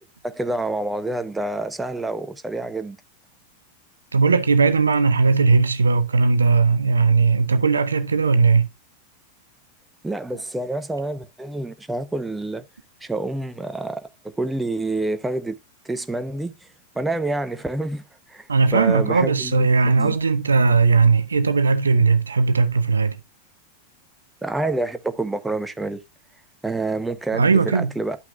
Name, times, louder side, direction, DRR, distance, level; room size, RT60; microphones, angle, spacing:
voice 1, 0.2-3.0 10.0-12.6 13.0-14.1 14.4-15.6 15.8-16.5 17.0-18.0 18.3-19.7 20.0-20.1 24.4-26.0 26.6-28.2, right 2 dB, 5° right, 0.7 m, -27 dB
voice 2, 4.1-8.7 18.5-23.2 27.3-27.9, right 4 dB, 75° right, 0.6 m, -18 dB
11.5 x 5.8 x 2.3 m
figure-of-eight pair, 90°, 0 cm